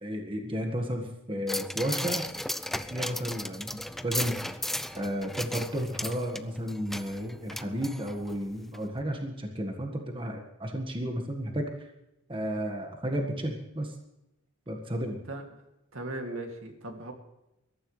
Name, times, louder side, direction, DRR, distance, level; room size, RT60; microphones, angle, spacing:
voice 1, 0.0-2.3 2.9-4.6 4.9-11.7 12.3-13.9 14.7-15.2, equal, 25° right, 2 dB, 1.7 m, -33 dB
sound 1, 1.5-8.4 8.7-8.8, left 1 dB, ahead, 0.4 m, -35 dB
voice 2, 15.9-17.1, right 2 dB, 70° right, 3 dB, 2.5 m, -37 dB
22.0 x 13.5 x 3.3 m, 0.89 s
head